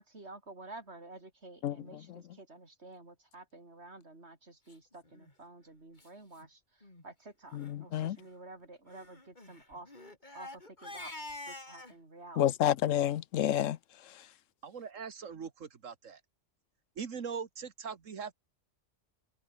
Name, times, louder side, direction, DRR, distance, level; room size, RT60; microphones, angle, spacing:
voice 1, 0.0-11.1 11.5-12.6, right 2 dB, 60° right, 4.3 m, -51 dB
Crying sobbing, 5.1-5.3 6.0-6.1 6.4-6.5 6.8-7.0 7.5-7.7 8.9-12.0, left 2 dB, 35° left, 3.9 m, -47 dB
voice 2, 7.6-8.2 12.4-13.8, left 11 dB, 85° left, 1.1 m, -29 dB
voice 3, 14.6-16.2 17.0-18.3, right 6 dB, 90° right, 1.9 m, -41 dB
omnidirectional pair, 1.3 m